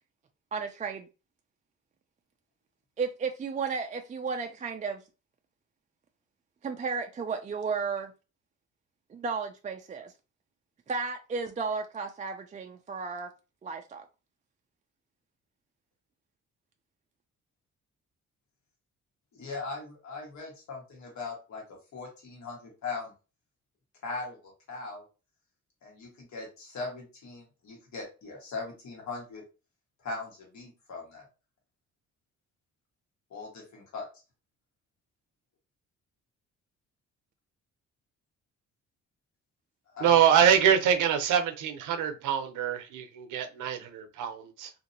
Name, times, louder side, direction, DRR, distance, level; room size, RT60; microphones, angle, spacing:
voice 1, 0.5-1.1 3.0-5.0 6.6-8.1 9.1-10.1 10.9-13.3 13.6-14.0, right 5 dB, 25° right, 0.3 m, -33 dB
voice 2, 19.3-23.1 24.0-25.0 25.8-29.4 30.0-31.3 33.3-34.1 39.9-40.2, left 3 dB, 65° left, 1.5 m, -40 dB
voice 3, 40.0-44.7, right 8 dB, 90° right, 0.6 m, -24 dB
2.8 x 2.6 x 2.6 m
cardioid pair, 90°, 30 cm